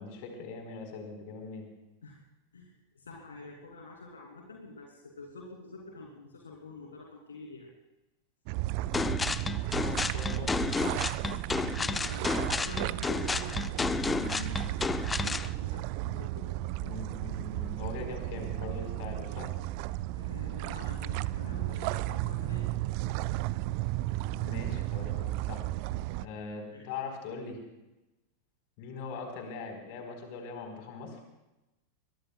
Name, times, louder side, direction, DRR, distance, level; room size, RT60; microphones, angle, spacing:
voice 1, 0.0-1.6 9.8-10.6 13.8-14.5 16.8-19.5 24.3-25.6 26.2-27.6 28.8-31.2, left 4 dB, 45° left, 3 dB, 4.2 m, -41 dB
voice 2, 2.5-7.7 11.4-16.5 20.1-22.7 26.7-26.9, left 3 dB, 70° left, -1 dB, 2.8 m, -47 dB
sound 1, 8.5-26.3, right 16 dB, 45° right, 0.4 m, -34 dB
sound 2, 8.9-15.5, left 4 dB, 15° left, 0.5 m, -31 dB
22.5 x 22.0 x 2.3 m, 0.99 s
figure-of-eight pair, 90°, 0 cm